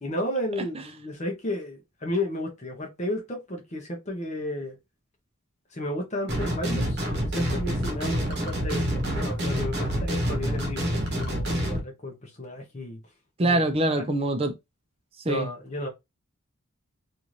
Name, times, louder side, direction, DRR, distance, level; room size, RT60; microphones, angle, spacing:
voice 1, 0.0-4.8 5.7-7.0 7.3-13.0 13.4-14.1 15.2-15.9, left 1 dB, 30° left, 0.7 m, -33 dB
sound 1, 6.3-11.8, equal, 45° right, 0.9 m, -27 dB
voice 2, 13.4-14.5 15.3-15.5, right 2 dB, 25° right, 0.4 m, -24 dB
2.7 x 2.5 x 3.1 m
head